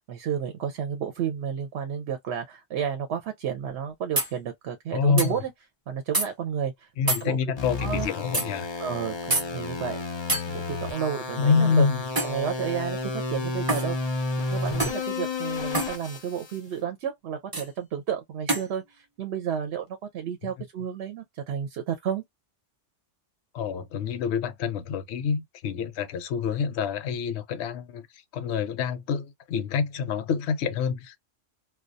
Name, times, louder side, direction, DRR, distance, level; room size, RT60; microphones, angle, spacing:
voice 1, 0.0-5.5 5.9-6.9 7.2-7.4 7.8-8.1 8.8-10.0 10.3-11.9 12.2-14.0 14.5-22.2, right 8 dB, 70° right, 0.8 m, -31 dB
sound 1, 4.2-4.3 5.2-5.3 6.1-6.3 7.1-7.3 8.3-8.5 9.3-9.5 10.3-10.5 12.2-12.4 13.7-13.9 14.8-15.0 15.7-15.9 17.5-17.7 18.5-18.7, right 2 dB, 25° right, 0.5 m, -26 dB
voice 2, 4.9-5.3 7.0-8.7 11.4-12.0 23.5-28.1 28.3-31.2, left 6 dB, 70° left, 0.8 m, -27 dB
sound 2, 7.6-16.6, left 3 dB, 40° left, 0.4 m, -32 dB
2.2 x 2.2 x 2.5 m
omnidirectional pair, 1.2 m